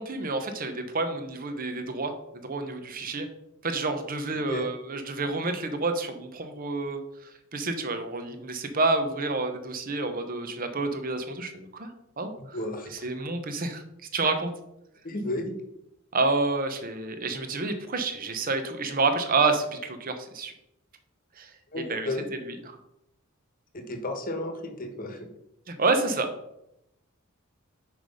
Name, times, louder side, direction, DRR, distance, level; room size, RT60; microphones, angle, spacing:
voice 1, 0.0-2.1 2.4-3.3 3.6-12.6 12.9-13.8 14.1-14.5 16.1-20.5 21.4-22.8 25.7-26.3, right 3 dB, 40° right, 7 dB, 0.9 m, -29 dB
voice 2, 12.5-13.1 15.0-15.4 21.7-22.2 23.7-25.2, left 2 dB, 40° left, 5 dB, 1.1 m, -33 dB
5.9 x 4.9 x 5.3 m, 0.84 s
head